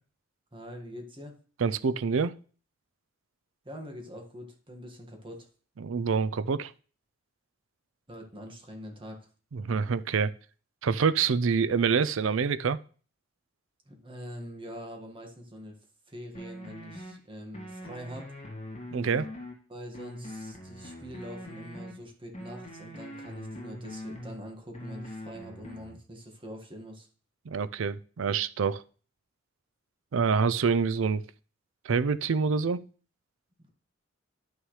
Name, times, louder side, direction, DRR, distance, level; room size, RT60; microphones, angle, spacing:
voice 1, 0.5-1.3 3.6-5.5 8.1-9.2 13.9-15.7 16.1-18.3 19.7-27.1, equal, 25° right, 2 dB, 1.7 m, -44 dB
voice 2, 1.6-2.3 5.8-6.7 9.5-10.3 10.8-12.8 18.9-19.3 27.5-28.8 30.1-31.2 31.9-32.8, right 5 dB, 70° right, 16 dB, 0.5 m, -26 dB
sound 1, 16.3-17.1 17.5-19.5 19.9-21.9 22.3-24.3 24.7-25.9, left 1 dB, 30° left, 1.9 m, -42 dB
11.0 x 6.3 x 3.2 m, 0.41 s
head